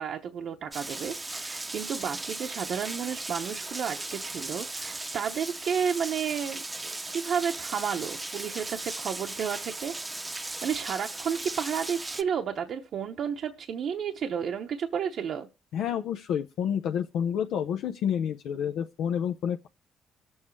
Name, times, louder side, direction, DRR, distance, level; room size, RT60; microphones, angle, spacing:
voice 1, 0.0-9.9 10.4-15.5, right 7 dB, 65° right, 0.8 m, -32 dB
Rain, 0.7-12.2, right 2 dB, 15° right, 0.7 m, -37 dB
voice 2, 15.7-19.7, left 8 dB, 85° left, 0.6 m, -29 dB
21.5 x 7.2 x 3.2 m
cardioid pair, 90°, 0 cm